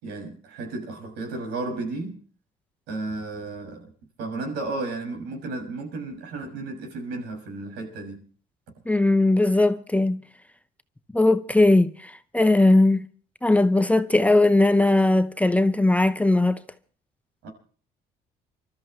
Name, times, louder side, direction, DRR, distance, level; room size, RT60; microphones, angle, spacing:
voice 1, 0.0-2.2 2.9-3.9 4.2-8.3 17.4-17.5, right 2 dB, 85° right, 6.4 m, -33 dB
voice 2, 8.9-10.2 11.1-13.1 13.4-16.6, left 2 dB, 10° left, 0.7 m, -19 dB
29.0 x 13.5 x 3.3 m
cardioid pair, 110°, 17 cm